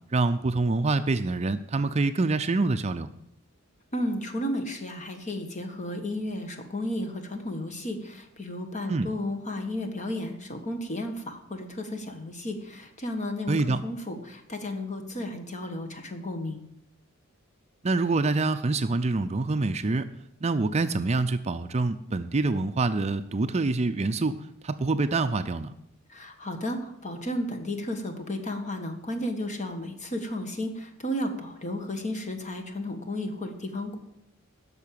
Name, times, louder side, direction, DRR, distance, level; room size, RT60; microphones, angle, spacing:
voice 1, 0.1-3.1 8.9-9.1 13.5-13.8 17.8-20.1 20.4-25.7, right 3 dB, 30° right, 9 dB, 0.5 m, -26 dB
voice 2, 3.9-16.6 26.1-34.0, left 1 dB, 35° left, 5 dB, 1.5 m, -33 dB
11.0 x 6.5 x 8.6 m, 0.79 s
head